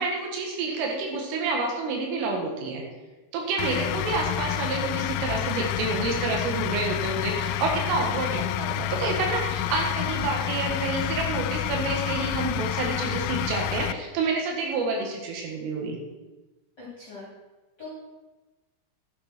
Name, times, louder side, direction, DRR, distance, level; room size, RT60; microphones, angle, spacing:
voice 1, 0.0-2.8 3.3-16.0, right 3 dB, 80° right, 0 dB, 4.3 m, -29 dB
sound 1, 3.6-13.9, left 12 dB, 90° left, 3.2 m, -29 dB
voice 2, 16.8-17.2 17.8-17.9, left 4 dB, 25° left, -8 dB, 3.1 m, -41 dB
12.0 x 9.8 x 4.5 m, 1.1 s
omnidirectional pair, 5.8 m